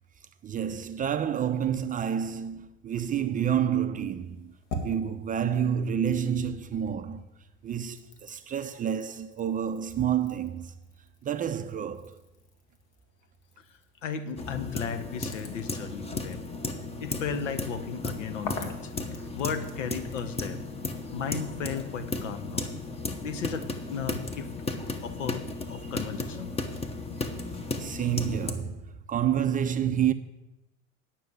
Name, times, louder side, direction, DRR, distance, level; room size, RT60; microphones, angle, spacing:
voice 1, 0.4-4.5 4.8-7.2 7.6-10.7 11.2-12.2 27.3-30.1, right 9 dB, 20° right, 0.5 m, -29 dB
sound 1, 4.1-6.8 7.1-20.4, left 2 dB, 50° left, 1.9 m, -46 dB
voice 2, 14.0-16.4 17.0-18.9 19.3-20.6 21.1-22.7 23.2-24.5 25.0-26.5, left 6 dB, 70° left, 1.1 m, -35 dB
sound 2, 14.4-28.5, left 3 dB, 15° left, 1.0 m, -35 dB
9.3 x 5.9 x 8.2 m
hypercardioid pair, 80°, 38 cm